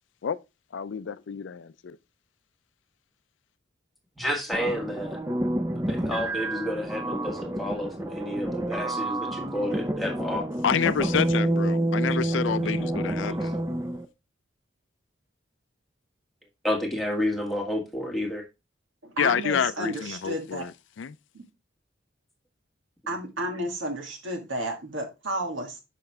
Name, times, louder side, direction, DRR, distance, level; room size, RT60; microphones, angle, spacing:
voice 1, 0.7-2.0 10.6-13.6 19.2-21.2, left 7 dB, 75° left, 0.4 m, -28 dB
voice 2, 4.2-5.2 5.7-10.5 16.6-18.4, left 1 dB, ahead, 1.5 m, -30 dB
sound 1, 4.5-14.1, right 1 dB, 15° right, 0.6 m, -29 dB
voice 3, 19.0-20.6 23.1-25.8, right 1 dB, 80° right, 2.0 m, -32 dB
6.8 x 5.4 x 3.4 m
head